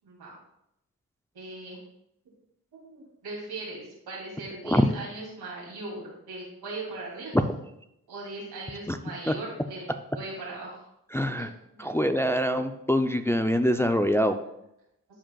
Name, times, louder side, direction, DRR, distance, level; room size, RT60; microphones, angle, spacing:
voice 1, 0.0-0.3 1.3-1.8 2.7-7.3 8.1-9.8 10.1-10.9 11.2-11.9, right 2 dB, 85° right, -4 dB, 2.8 m, -39 dB
voice 2, 11.1-11.5 11.8-14.4, equal, 5° left, 7 dB, 0.5 m, -24 dB
12.5 x 4.9 x 2.3 m, 0.81 s
cardioid pair, 50°, 37 cm